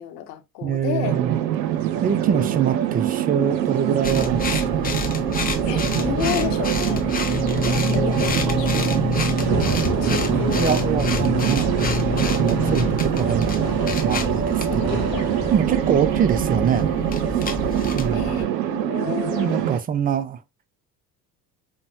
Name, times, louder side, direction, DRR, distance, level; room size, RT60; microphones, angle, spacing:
voice 1, 0.0-1.2 2.2-2.5 5.6-7.1 7.6-9.0 9.9-10.7 14.7-15.3 18.1-19.7, left 10 dB, 75° left, 0.8 m, -31 dB
voice 2, 0.6-1.4 2.0-4.9 10.3-11.8 12.3-15.0 15.5-16.9 17.9-18.3 19.4-20.4, right 8 dB, 20° right, 0.4 m, -24 dB
sound 1, 1.0-19.8, right 11 dB, 80° right, 0.6 m, -24 dB
sound 2, 4.0-18.5, left 4 dB, 20° left, 0.7 m, -27 dB
sound 3, 8.0-15.5, right 3 dB, 45° right, 1.7 m, -30 dB
5.3 x 2.1 x 3.0 m
figure-of-eight pair, 60°, 49 cm